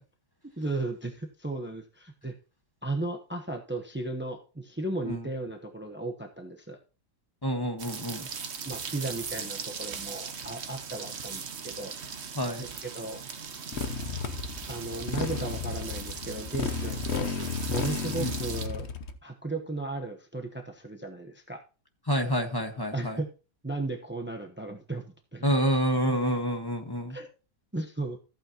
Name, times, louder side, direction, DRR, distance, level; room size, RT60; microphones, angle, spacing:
voice 1, 0.6-2.3 2.8-6.8 8.6-11.9 12.6-13.2 14.7-17.3 17.7-18.9 19.2-21.6 22.9-23.3 23.6-25.5 27.1-27.3 27.7-28.2, right 2 dB, 15° right, 3 dB, 0.3 m, -35 dB
voice 2, 7.4-8.3 12.3-12.7 18.2-18.4 22.1-23.2 25.4-27.2, equal, 15° left, 4 dB, 1.3 m, -28 dB
sound 1, 7.8-18.7, right 6 dB, 45° right, 1.0 m, -39 dB
Motorcycle, 13.7-19.1, left 5 dB, 50° left, 0.8 m, -33 dB
14.5 x 8.7 x 2.9 m, 0.34 s
omnidirectional pair, 2.1 m